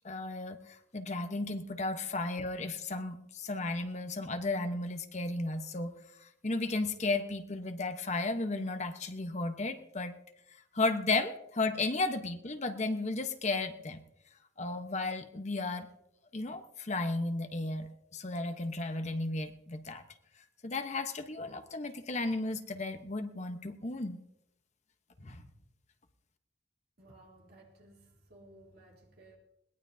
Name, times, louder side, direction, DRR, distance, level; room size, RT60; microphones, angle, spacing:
voice 1, 0.0-5.9 6.2-10.1 10.7-14.0 14.6-15.9 16.3-20.0 20.6-24.2 25.2-25.4, left 2 dB, 40° left, 1.0 m, -34 dB
voice 2, 27.0-29.4, right 1 dB, 60° right, 3.1 m, -57 dB
21.5 x 18.0 x 2.7 m
head